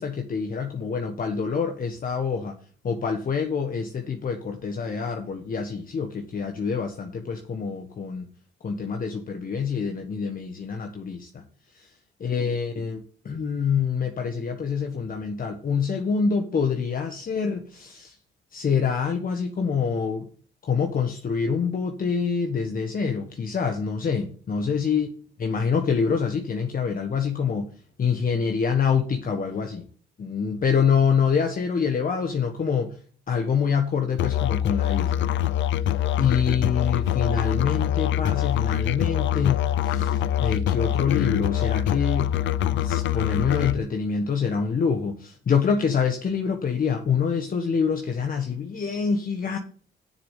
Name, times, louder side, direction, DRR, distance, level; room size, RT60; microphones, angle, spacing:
voice 1, 0.0-2.6 2.8-8.2 8.6-11.4 11.7-11.9 12.2-18.1 18.5-20.3 20.6-25.1 25.4-27.7 28.0-29.9 30.2-32.9 33.3-35.3 36.2-42.3 42.7-49.6, left 6 dB, 45° left, 4 dB, 1.4 m, -26 dB
Musical instrument, 34.2-43.8, left 11 dB, 70° left, 0.5 m, -24 dB
7.1 x 6.9 x 7.4 m, 0.41 s
cardioid pair, 90°, 20 cm